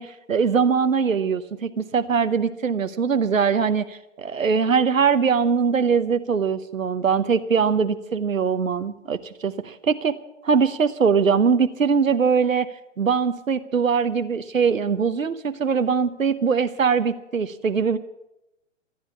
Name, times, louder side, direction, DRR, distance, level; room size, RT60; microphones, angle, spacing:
voice 1, 0.0-9.5 9.9-10.2 10.4-12.7 13.0-18.0, right 6 dB, 85° right, 10 dB, 0.9 m, -22 dB
14.5 x 10.5 x 8.3 m, 0.91 s
figure-of-eight pair, 120°, 39 cm